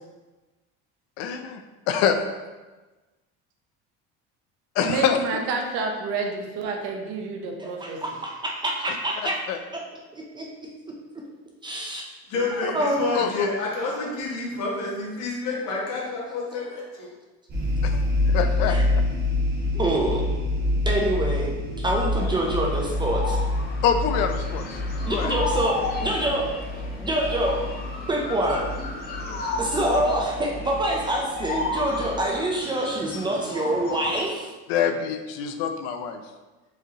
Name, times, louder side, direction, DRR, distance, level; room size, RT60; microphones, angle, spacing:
voice 1, 1.2-1.6 1.9-2.2 4.8-5.4 9.2-9.6 12.6-12.7 13.1-13.5 17.8-19.0 23.8-24.7 25.1-25.3 29.2-29.4 34.7-36.2, left 8 dB, 80° left, 7 dB, 0.5 m, -26 dB
voice 2, 4.9-8.0, right 3 dB, 75° right, 2 dB, 0.8 m, -29 dB
voice 3, 7.6-9.4 10.1-10.5 11.6-12.0 12.5-13.0 18.7-18.8 19.7-20.2 20.9-23.4 25.1-26.5 27.0-27.6 28.1-28.6 29.6-34.5, right 1 dB, 15° right, -1 dB, 0.4 m, -26 dB
voice 4, 12.3-17.1, left 3 dB, 60° left, -4 dB, 1.4 m, -29 dB
sound 1, 17.5-32.2, left 2 dB, 35° right, 1.0 m, -27 dB
sound 2, 22.1-34.2, left 3 dB, 35° left, 0.7 m, -33 dB
4.7 x 2.9 x 2.8 m, 1.2 s
cardioid pair, 145°, 29 cm